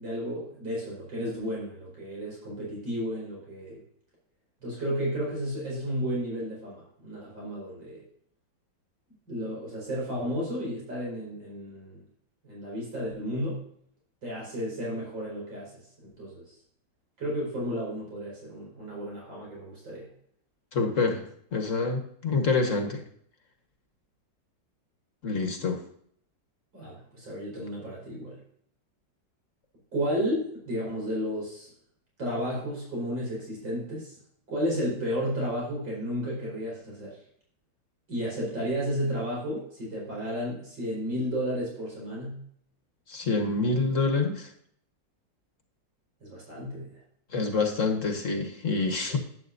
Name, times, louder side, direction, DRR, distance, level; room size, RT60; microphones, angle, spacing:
voice 1, 0.0-3.8 4.6-8.0 9.3-12.0 12.4-13.6 14.2-16.6 17.2-20.1 26.7-28.4 29.9-31.7 32.2-34.2 34.5-37.2 38.1-42.4 46.2-47.0 49.1-49.2, equal, 90° right, -4 dB, 5.3 m, -33 dB
voice 2, 20.7-21.2 21.5-23.0 25.2-25.8 43.1-44.5 47.3-49.2, left 3 dB, 45° left, 4 dB, 1.5 m, -27 dB
11.5 x 9.8 x 2.6 m, 0.65 s
omnidirectional pair, 2.0 m